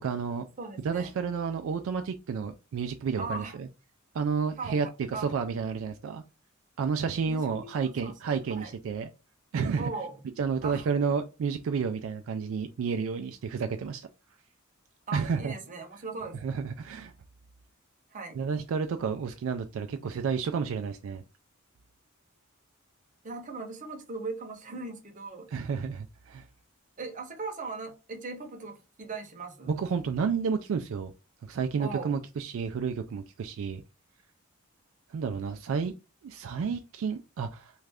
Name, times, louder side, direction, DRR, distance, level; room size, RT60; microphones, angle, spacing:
voice 1, 0.0-0.4 0.8-3.7 4.1-6.2 6.8-9.1 9.5-9.9 10.4-14.1 15.1-15.5 16.4-17.1 18.3-21.2 25.5-26.4 29.7-31.1 31.4-33.8 35.1-35.9 36.2-37.7, right 6 dB, 70° right, 0.3 m, -31 dB
voice 2, 0.6-1.1 3.2-3.6 4.6-4.8 5.1-5.3 7.3-7.4 7.7-8.1 8.6-8.7 9.8-10.1 10.6-10.9 15.1-16.4 18.1-18.4 23.2-25.5 27.0-29.8 31.8-32.1, right 3 dB, 40° right, 0.8 m, -38 dB
3.1 x 2.4 x 3.4 m
head